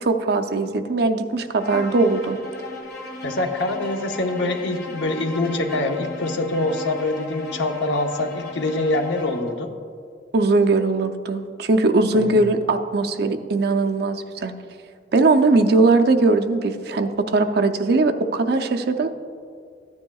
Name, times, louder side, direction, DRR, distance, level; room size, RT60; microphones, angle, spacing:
voice 1, 0.0-2.4 10.3-14.5 15.1-19.1, right 3 dB, 60° right, 6 dB, 0.5 m, -20 dB
Bowed string instrument, 1.6-9.5, left 2 dB, 60° left, 1.5 m, -36 dB
voice 2, 3.2-9.7 12.1-12.4, left 2 dB, 85° left, 5 dB, 0.8 m, -24 dB
14.0 x 9.6 x 2.3 m, 2.2 s
head